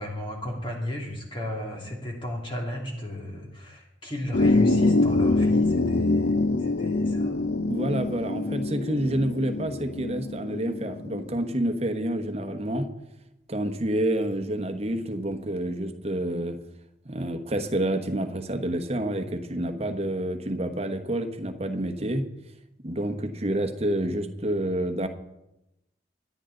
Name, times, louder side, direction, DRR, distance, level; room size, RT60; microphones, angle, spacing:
voice 1, 0.0-7.4, left 1 dB, 25° left, -1 dB, 2.4 m, -34 dB
sound 1, 4.3-11.3, left 2 dB, 60° left, 0.6 m, -24 dB
voice 2, 7.7-12.9 13.5-16.6 17.0-22.2 22.8-25.1, right 1 dB, 35° right, 6 dB, 1.1 m, -28 dB
24.0 x 9.3 x 3.9 m, 0.91 s
head